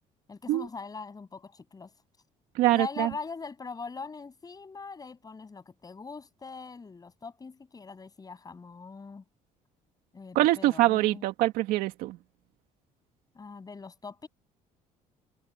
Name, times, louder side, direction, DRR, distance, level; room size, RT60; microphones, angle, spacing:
voice 1, 0.3-1.9 2.7-9.2 10.1-11.3 13.3-14.3, left 4 dB, 25° left, 7.5 m, -41 dB
voice 2, 2.5-3.1 10.3-12.2, right 17 dB, 85° right, 2.5 m, -24 dB
cardioid pair, 100°, 15 cm